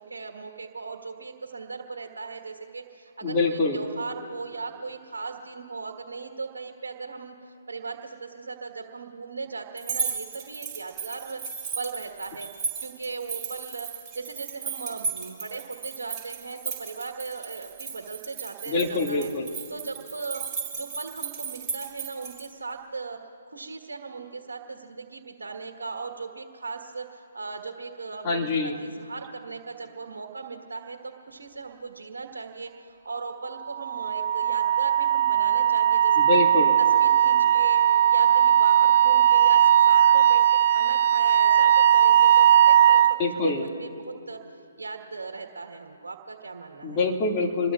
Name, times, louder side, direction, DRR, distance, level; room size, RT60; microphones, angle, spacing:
voice 1, 0.0-19.3 19.7-20.4 20.7-23.2 23.5-36.4 36.8-43.2 43.6-44.4 44.8-47.0, right 4 dB, 70° right, 3 dB, 1.5 m, -38 dB
voice 2, 3.2-3.8 18.7-19.5 28.2-28.8 36.2-36.7 43.2-43.6 46.8-47.7, left 3 dB, 30° left, 0 dB, 2.2 m, -25 dB
sound 1, 9.8-22.5, right 5 dB, 15° right, 5.0 m, -35 dB
Wind instrument woodwind instrument, 33.7-43.2, right 10 dB, 50° right, 0.4 m, -18 dB
27.5 x 21.5 x 2.5 m, 2.6 s
figure-of-eight pair, 135°, 0 cm